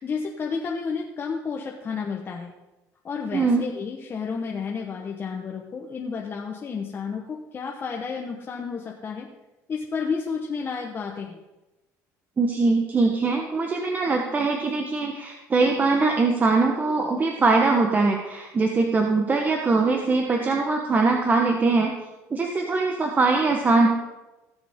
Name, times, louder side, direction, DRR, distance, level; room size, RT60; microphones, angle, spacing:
voice 1, 0.0-2.5 3.0-9.3 9.7-11.4, left 5 dB, 35° left, -1 dB, 1.2 m, -31 dB
voice 2, 3.3-3.6 12.4-21.9 22.3-23.9, right 3 dB, 25° right, 2 dB, 1.1 m, -22 dB
17.0 x 7.0 x 3.7 m, 1.0 s
cardioid pair, 115°, 6 cm